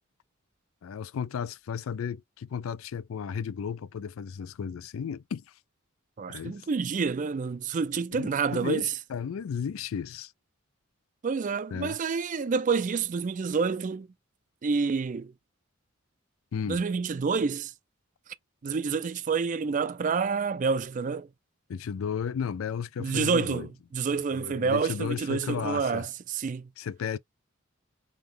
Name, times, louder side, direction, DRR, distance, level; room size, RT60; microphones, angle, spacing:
voice 1, 0.8-5.4 6.3-6.7 8.1-10.3 11.7-12.0 16.5-16.8 21.7-23.7 24.3-26.1 26.8-27.2, left 7 dB, 85° left, 0.4 m, -34 dB
voice 2, 6.2-8.9 11.2-14.1 14.6-15.3 16.7-17.7 18.6-21.3 23.0-26.7, right 5 dB, 40° right, 0.4 m, -28 dB
3.8 x 3.1 x 3.3 m
head